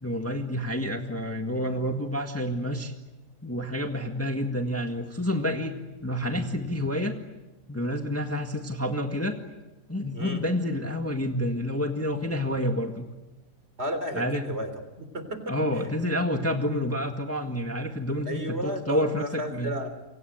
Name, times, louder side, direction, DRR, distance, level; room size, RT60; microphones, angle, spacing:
voice 1, 0.0-2.9 3.4-5.8 6.0-7.2 7.7-9.4 9.9-13.1 14.1-14.5 15.5-19.7, equal, 10° left, 4 dB, 1.7 m, -29 dB
voice 2, 13.8-14.7 15.0-15.5 18.2-19.9, equal, 40° right, 9 dB, 3.9 m, -32 dB
28.0 x 25.0 x 8.0 m, 1.0 s
omnidirectional pair, 1.7 m